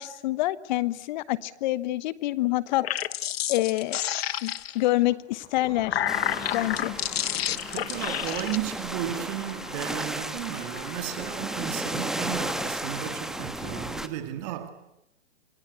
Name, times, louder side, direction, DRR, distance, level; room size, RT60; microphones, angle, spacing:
voice 1, 0.0-3.0 3.5-4.0 4.4-6.1 6.5-6.9, left 17 dB, 45° left, 1.2 m, -27 dB
sound 1, 2.7-4.9 5.6-8.6, left 11 dB, 60° left, 1.0 m, -30 dB
sound 2, 5.1-14.0, left 4 dB, 20° left, 4.6 m, -44 dB
sound 3, 6.1-14.1, right 1 dB, ahead, 1.2 m, -34 dB
voice 2, 7.5-14.7, right 12 dB, 40° right, 2.3 m, -34 dB
27.5 x 22.5 x 8.2 m
hypercardioid pair, 130°, 34 cm